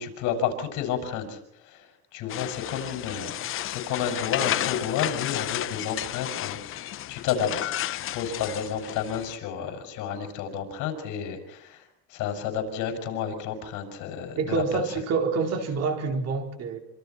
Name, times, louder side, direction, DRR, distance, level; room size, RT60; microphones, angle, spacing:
voice 1, 0.0-1.4 1.6-1.9 2.1-3.3 3.6-11.8 12.1-14.6, left 8 dB, 70° left, 6 dB, 6.6 m, -31 dB
sound 1, 2.3-9.4, left 13 dB, 40° left, 0.7 m, -32 dB
voice 2, 14.4-16.8, right 5 dB, 50° right, 5 dB, 4.3 m, -27 dB
27.0 x 26.5 x 4.4 m, 0.78 s
cardioid pair, 145°, 32 cm